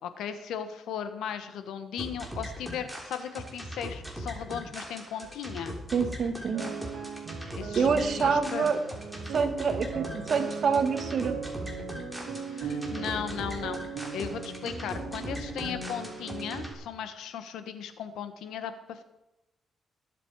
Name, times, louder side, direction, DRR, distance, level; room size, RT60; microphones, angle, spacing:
voice 1, 0.0-5.8 7.6-8.7 12.5-13.8 14.1-19.0, left 8 dB, 90° left, 9 dB, 1.4 m, -37 dB
sound 1, 2.0-16.7, equal, ahead, 3.2 m, -40 dB
voice 2, 5.9-6.7 7.5-8.8 9.3-11.4, right 5 dB, 50° right, 8 dB, 1.7 m, -27 dB
sound 2, 6.5-16.8, right 5 dB, 80° right, 2.5 m, -38 dB
20.0 x 7.6 x 4.9 m, 0.95 s
cardioid pair, 100°, 0 cm